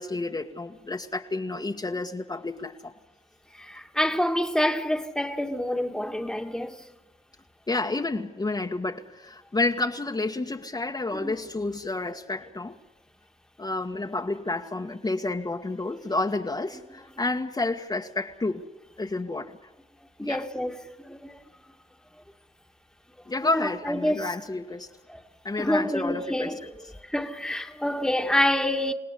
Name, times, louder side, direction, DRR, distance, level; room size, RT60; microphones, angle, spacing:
voice 1, 0.0-2.9 7.7-12.7 13.6-18.6 19.0-19.5 20.2-20.4 23.3-24.9 25.4-26.5, left 2 dB, 25° left, 1.6 m, -30 dB
voice 2, 3.6-6.9 11.1-11.3 20.2-21.4 23.4-24.4 25.1-25.2 25.6-26.7 27.1-28.9, left 1 dB, 5° left, 2.0 m, -27 dB
29.0 x 17.5 x 8.3 m
cardioid pair, 60°, 16 cm